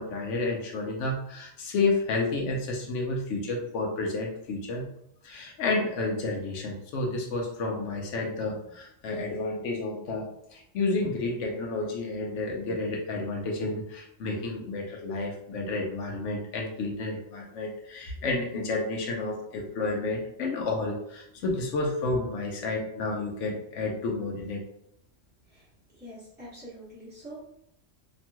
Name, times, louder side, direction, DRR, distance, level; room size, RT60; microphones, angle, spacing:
voice 1, 0.0-4.9 5.2-24.6, left 3 dB, 70° left, 0 dB, 1.0 m, -31 dB
voice 2, 25.9-27.5, equal, 10° right, -12 dB, 0.9 m, -45 dB
2.9 x 2.9 x 2.2 m, 0.75 s
omnidirectional pair, 1.4 m